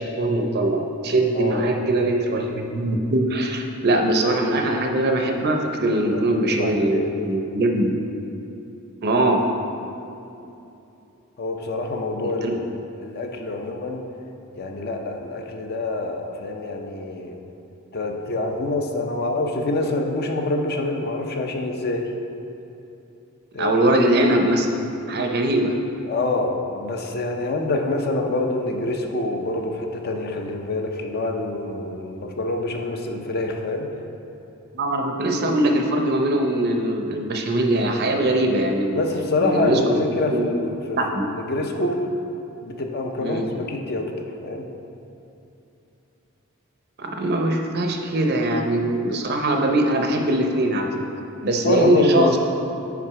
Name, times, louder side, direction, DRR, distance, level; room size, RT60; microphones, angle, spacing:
voice 1, 0.0-7.9 9.0-9.4 12.4-12.5 23.6-24.7 25.1-25.7 34.7-39.0 39.4-40.0 40.3-40.4 41.0-41.2 43.2-43.4 47.0-51.0 51.4-52.4, right 1 dB, 50° right, 3 dB, 0.6 m, -21 dB
voice 2, 1.3-1.9 5.8-7.3 11.4-12.6 13.0-14.0 14.6-17.4 17.9-22.1 23.5-23.7 26.0-33.9 38.9-42.0 42.6-44.7 51.6-52.4, left 2 dB, 45° left, 3 dB, 0.5 m, -26 dB
5.9 x 4.9 x 4.7 m, 2.8 s
head